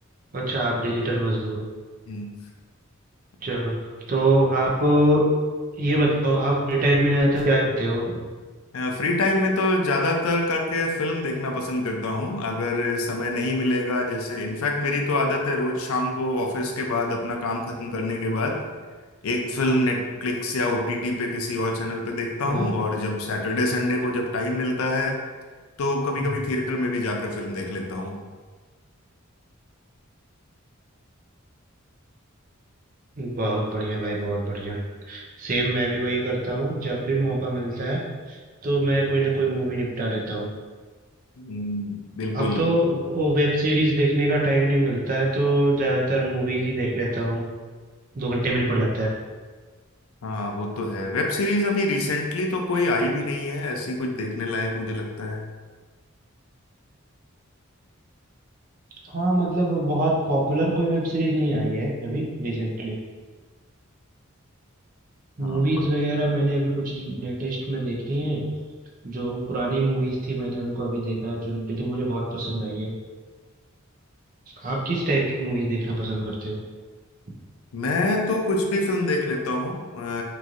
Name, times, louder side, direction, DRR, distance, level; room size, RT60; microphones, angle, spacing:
voice 1, 0.3-1.7 3.4-3.7 4.1-5.2 5.8-8.2 22.5-22.7 33.2-34.8 35.1-38.0 38.3-38.4 38.6-40.5 42.3-47.4 48.1-49.1 59.1-63.0 65.4-68.5 69.0-72.9 74.6-76.6, right 1 dB, 40° right, -2 dB, 0.5 m, -24 dB
voice 2, 8.7-18.6 19.2-25.2 25.8-28.2 41.4-42.7 50.2-55.4 65.4-65.8 77.7-80.2, left 2 dB, 90° left, 1 dB, 0.5 m, -26 dB
3.0 x 2.6 x 2.4 m, 1.4 s
head